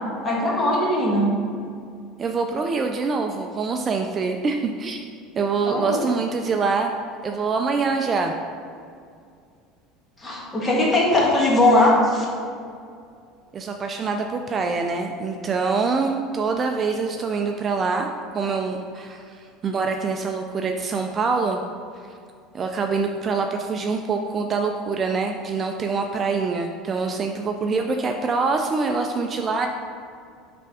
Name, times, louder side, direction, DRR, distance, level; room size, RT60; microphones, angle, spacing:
voice 1, 0.2-1.3 5.6-6.0 10.2-12.3, left 1 dB, 20° left, -4 dB, 1.4 m, -19 dB
voice 2, 2.2-5.0 5.4-6.9 7.2-8.3 13.5-18.1 18.3-21.6 22.5-29.7, right 4 dB, 30° right, 3 dB, 0.3 m, -25 dB
5.9 x 3.4 x 4.7 m, 2.3 s
supercardioid pair, 130°, 0 cm